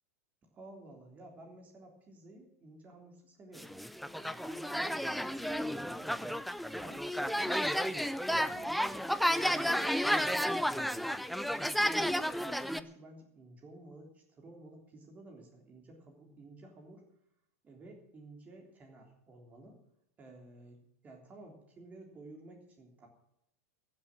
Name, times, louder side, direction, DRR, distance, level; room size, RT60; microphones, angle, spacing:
voice 1, 0.4-3.7 4.2-6.4 6.8-9.1 9.4-11.1 11.5-17.0 17.6-19.8 20.2-20.8 21.0-23.1, right 2 dB, 20° right, 1 dB, 3.4 m, -53 dB
sound 1, 3.6-12.8, equal, ahead, 0.4 m, -32 dB
15.0 x 7.6 x 9.1 m, 0.79 s
supercardioid pair, 155°, 8 cm